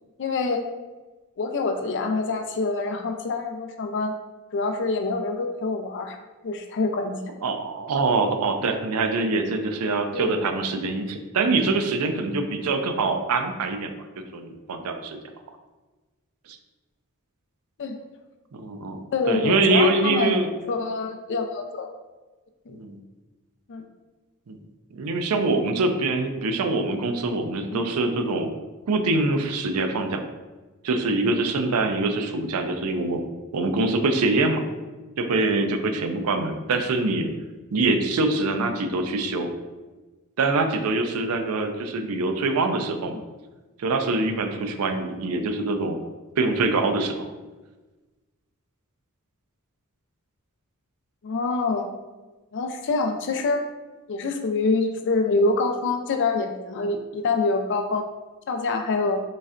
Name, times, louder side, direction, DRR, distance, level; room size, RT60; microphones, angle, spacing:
voice 1, 0.2-0.6 1.4-4.1 4.5-6.2 6.4-7.2 10.1-10.3 17.8-18.0 19.1-20.3 20.7-21.9 22.7-22.8 23.7-23.8 27.7-27.8 51.2-51.9 52.5-53.6 54.1-58.0 58.5-59.2, left 3 dB, 55° left, 6 dB, 0.4 m, -25 dB
voice 2, 7.4-15.2 16.5-16.6 18.5-19.0 19.3-20.5 22.7-23.0 24.5-24.6 24.9-28.5 28.9-30.2 30.8-33.2 33.5-34.6 35.2-37.3 37.7-39.5 40.4-43.2 43.8-46.0 46.4-47.3, right 3 dB, 85° right, 6 dB, 0.4 m, -24 dB
4.0 x 3.2 x 2.4 m, 1.2 s
head